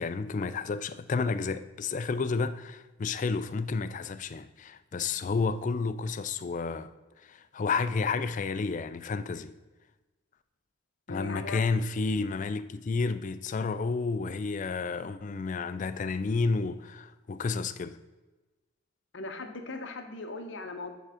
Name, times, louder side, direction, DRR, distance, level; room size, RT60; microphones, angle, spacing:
voice 1, 0.0-6.9 7.2-9.5 11.1-18.0, left 4 dB, 35° left, 0.3 m, -31 dB
voice 2, 11.1-11.6 19.1-20.9, left 3 dB, 60° left, 0.9 m, -39 dB
9.1 x 3.7 x 4.9 m
head